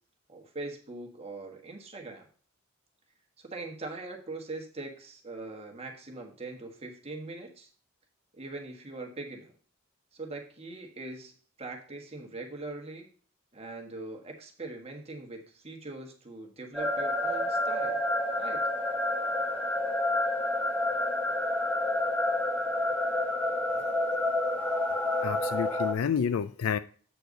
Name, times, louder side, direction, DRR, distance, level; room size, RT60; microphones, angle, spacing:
voice 1, 0.3-2.3 3.4-7.7 8.3-9.5 10.1-13.1 13.5-18.0 18.4-18.6, right 2 dB, 30° right, 2 dB, 1.5 m, -41 dB
sound 1, 16.7-25.9, left 1 dB, 5° left, 1.1 m, -29 dB
voice 2, 25.2-26.8, left 7 dB, 85° left, 13 dB, 0.4 m, -29 dB
8.2 x 4.6 x 5.1 m, 0.42 s
head